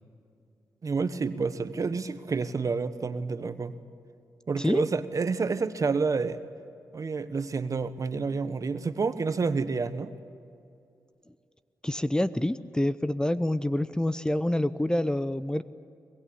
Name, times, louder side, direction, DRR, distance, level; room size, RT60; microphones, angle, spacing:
voice 1, 0.8-3.7 4.5-6.4 6.9-10.1, right 4 dB, 50° right, 12 dB, 1.2 m, -29 dB
voice 2, 11.8-15.6, left 1 dB, 10° left, 14 dB, 0.8 m, -27 dB
22.5 x 21.5 x 8.6 m, 2.5 s
supercardioid pair, 45°, 7 cm